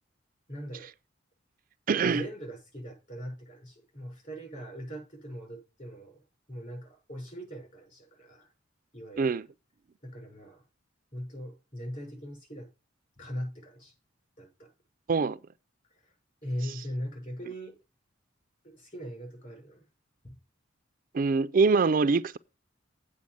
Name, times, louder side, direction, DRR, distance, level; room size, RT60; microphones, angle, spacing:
voice 1, 0.5-0.9 1.9-6.2 6.5-8.5 8.9-9.4 10.0-10.6 11.1-12.7 13.2-13.9 14.4-14.7 16.0-16.1 16.4-17.7 18.6-19.8 20.2-20.4, equal, 40° left, 6.1 m, -40 dB
voice 2, 1.9-2.2 9.2-9.5 15.1-15.4 21.1-22.4, right 4 dB, 45° right, 0.4 m, -24 dB
8.4 x 4.8 x 7.5 m
head